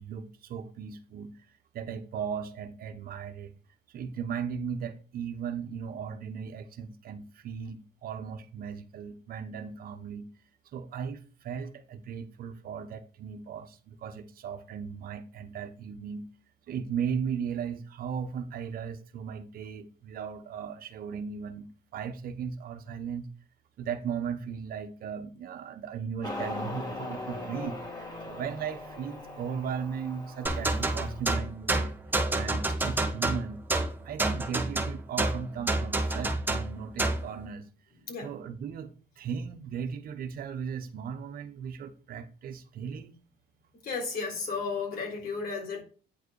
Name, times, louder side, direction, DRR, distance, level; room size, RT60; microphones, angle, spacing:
voice 1, 0.0-1.3 1.7-3.5 3.9-10.3 10.7-16.3 16.7-23.3 23.8-31.9 32.3-33.6 34.0-37.7 38.2-43.1, right 7 dB, 60° right, 1.1 m, -37 dB
Motorcycle, 26.2-31.2, left 1 dB, 25° left, 2.5 m, -39 dB
sound 1, 30.5-37.3, right 2 dB, 10° right, 1.2 m, -28 dB
voice 2, 43.8-45.8, left 4 dB, 60° left, 3.8 m, -33 dB
9.4 x 4.8 x 4.8 m
cardioid pair, 110°, 17 cm